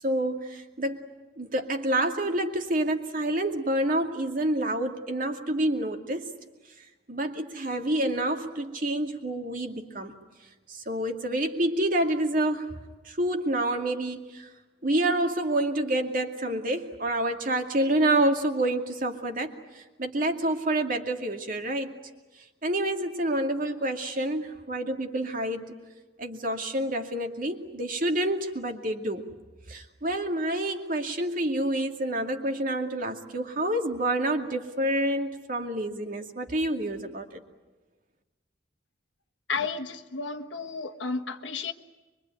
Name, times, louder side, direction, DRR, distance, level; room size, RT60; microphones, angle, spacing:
voice 1, 0.0-1.1 1.4-6.3 7.1-10.1 10.7-12.8 13.0-14.5 14.8-21.9 22.6-25.7 26.2-29.2 29.7-37.4, right 1 dB, 50° right, 4 dB, 2.4 m, -28 dB
voice 2, 39.5-41.7, left 4 dB, 80° left, 7 dB, 1.5 m, -32 dB
24.0 x 24.0 x 9.5 m, 1.2 s
head